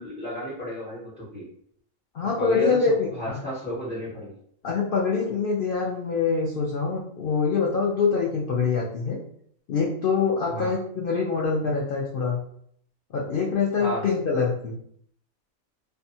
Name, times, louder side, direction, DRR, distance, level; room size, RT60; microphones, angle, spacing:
voice 1, 0.0-1.4 2.4-4.3 10.5-10.7 13.8-14.0, equal, 40° left, -9 dB, 1.0 m, -32 dB
voice 2, 2.1-3.4 4.6-9.2 9.7-12.4 13.1-14.8, left 5 dB, 65° left, -3 dB, 0.5 m, -25 dB
2.7 x 2.2 x 2.6 m, 0.65 s
omnidirectional pair, 1.4 m